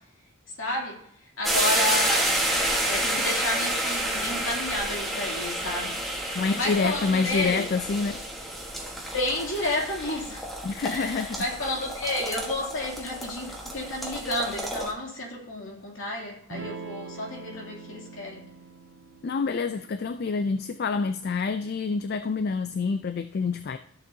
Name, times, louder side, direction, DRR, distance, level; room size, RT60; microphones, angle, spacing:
voice 1, 0.6-1.0 1.4-2.5 2.8-6.0 6.5-7.7 9.1-10.4 10.9-18.4, left 1 dB, 65° left, 2.8 m, -31 dB
sound 1, 1.4-14.9, right 1 dB, ahead, 1.3 m, -30 dB
voice 2, 6.3-8.2 10.6-11.4 19.2-23.8, left 4 dB, 45° left, 0.3 m, -27 dB
Electric guitar / Strum, 16.5-21.6, right 4 dB, 55° right, 0.8 m, -44 dB
13.5 x 6.9 x 2.7 m
head